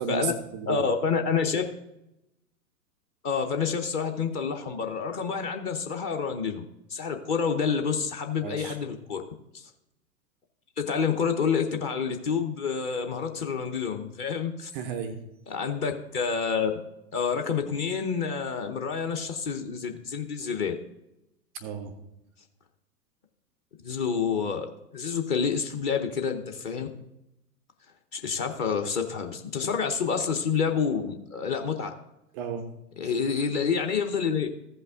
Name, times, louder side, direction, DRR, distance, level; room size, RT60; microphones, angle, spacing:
voice 1, 0.0-0.8 8.4-8.8 14.7-15.2 21.6-21.9 32.3-32.6, right 7 dB, 5° right, -2 dB, 0.3 m, -33 dB
voice 2, 0.7-1.6 3.2-6.6 6.9-9.2 9.5-9.6 10.8-14.7 15.5-16.7 17.1-20.7 23.8-26.9 28.1-31.9 33.0-34.5, left 6 dB, 30° left, 4 dB, 0.8 m, -28 dB
14.5 x 5.5 x 3.6 m, 0.89 s
figure-of-eight pair, 115°, 48 cm